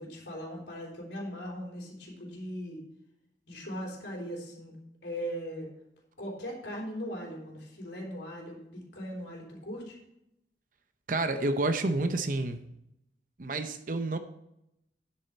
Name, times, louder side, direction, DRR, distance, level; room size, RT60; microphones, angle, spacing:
voice 1, 0.0-2.8 3.5-4.7 5.0-5.7 6.2-10.0, equal, 75° left, -2 dB, 3.5 m, -39 dB
voice 2, 11.1-12.6 13.4-14.2, right 2 dB, 50° right, 8 dB, 0.7 m, -29 dB
9.9 x 8.5 x 4.4 m, 0.82 s
head